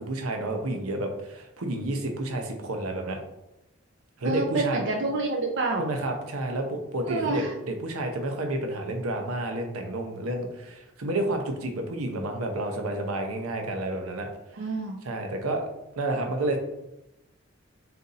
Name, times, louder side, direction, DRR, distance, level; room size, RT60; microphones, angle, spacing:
voice 1, 0.0-3.2 4.2-4.9 5.8-14.3 15.0-15.7 15.9-16.6, right 1 dB, 90° right, 4 dB, 0.7 m, -30 dB
voice 2, 4.2-5.9 7.1-7.5 14.5-15.0, right 3 dB, 55° right, 1 dB, 0.5 m, -28 dB
4.0 x 2.6 x 3.9 m, 0.90 s
head